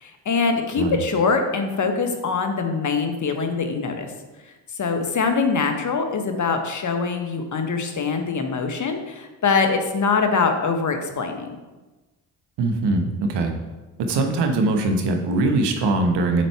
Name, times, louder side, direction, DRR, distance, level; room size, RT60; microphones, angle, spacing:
voice 1, 0.0-4.1 4.8-11.6, left 4 dB, 45° left, 5 dB, 1.2 m, -23 dB
voice 2, 12.6-13.5 14.1-16.5, right 2 dB, 70° right, 5 dB, 1.1 m, -21 dB
7.7 x 4.2 x 4.6 m, 1.2 s
supercardioid pair, 65°, 43 cm